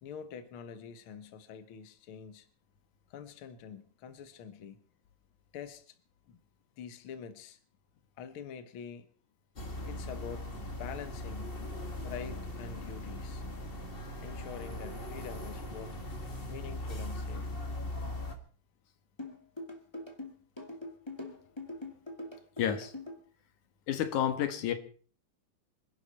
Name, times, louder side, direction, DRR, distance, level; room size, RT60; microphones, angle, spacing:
voice 1, 0.0-2.5 3.1-4.8 5.5-6.0 6.3-6.4 6.8-7.6 8.2-9.1 9.9-11.6 12.0-13.4 14.2-16.0 16.5-17.5, left 7 dB, 55° left, 10 dB, 1.9 m, -45 dB
sound 1, 9.6-18.4, left 1 dB, 25° left, 1.4 m, -39 dB
sound 2, 19.2-23.2, left 1 dB, 10° left, 2.1 m, -42 dB
voice 2, 22.6-22.9 23.9-24.7, left 10 dB, 85° left, 9 dB, 2.8 m, -30 dB
26.0 x 11.0 x 4.2 m, 0.42 s
omnidirectional pair, 3.4 m